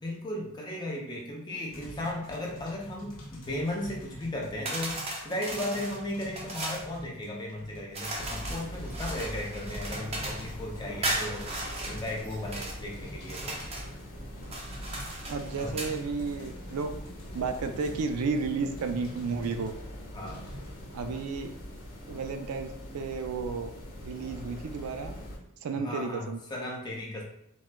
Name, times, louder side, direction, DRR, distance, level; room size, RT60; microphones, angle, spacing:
voice 1, 0.0-5.0 5.2-13.6 15.6-15.8 20.1-20.4 25.7-27.2, left 1 dB, 20° left, -2 dB, 0.5 m, -36 dB
sound 1, 1.7-19.8 20.3-20.9, equal, 60° left, 0.8 m, -48 dB
sound 2, 4.6-6.9 7.9-10.5 11.0-12.8 13.2-13.9 14.4-15.9, right 1 dB, 30° right, 0.5 m, -36 dB
sound 3, 8.1-25.4, equal, 85° left, 1.0 m, -42 dB
voice 2, 15.3-16.9 17.3-19.7 20.9-21.5 22.1-23.7 24.0-25.1 25.6-26.4, right 4 dB, 85° right, 7 dB, 0.3 m, -32 dB
3.9 x 2.2 x 2.2 m, 0.74 s
head